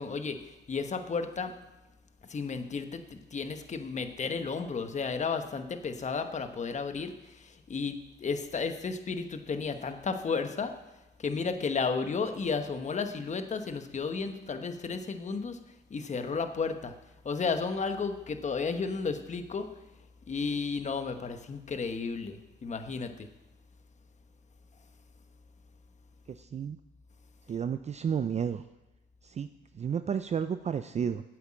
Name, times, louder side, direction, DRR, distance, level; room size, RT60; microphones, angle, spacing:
voice 1, 0.0-1.5 2.3-10.7 11.2-15.6 15.9-16.9 17.2-19.7 20.3-23.3, left 5 dB, 35° left, 8 dB, 1.1 m, -33 dB
voice 2, 26.3-26.8 27.5-28.6 29.2-29.5 29.7-31.2, right 7 dB, 35° right, 11 dB, 0.4 m, -31 dB
8.9 x 8.2 x 7.4 m, 1.0 s
cardioid pair, 90°, 20 cm